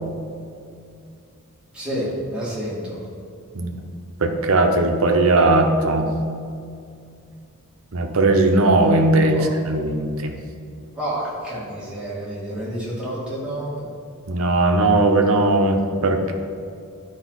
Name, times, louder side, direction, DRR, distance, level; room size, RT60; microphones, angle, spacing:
voice 1, 1.7-3.0 9.3-9.5 11.0-13.9, right 1 dB, 5° right, -9 dB, 2.3 m, -29 dB
voice 2, 4.2-6.1 7.9-10.4 14.3-16.3, right 2 dB, 65° right, 4 dB, 0.8 m, -18 dB
11.0 x 5.3 x 4.1 m, 2.3 s
head